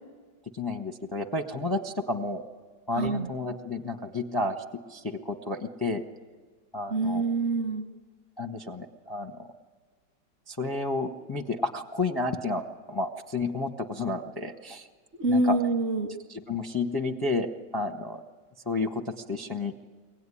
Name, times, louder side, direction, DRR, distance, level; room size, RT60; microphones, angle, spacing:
voice 1, 0.5-2.4 2.9-4.6 4.9-6.0 6.7-7.2 8.4-9.5 10.5-14.9 15.3-15.6 16.3-18.2 18.7-19.7, left 2 dB, 20° left, 3 dB, 0.7 m, -31 dB
voice 2, 3.0-3.3 6.9-7.9 15.2-16.1, right 2 dB, 45° right, 3 dB, 1.1 m, -26 dB
23.0 x 17.5 x 9.9 m, 1.5 s
omnidirectional pair, 2.0 m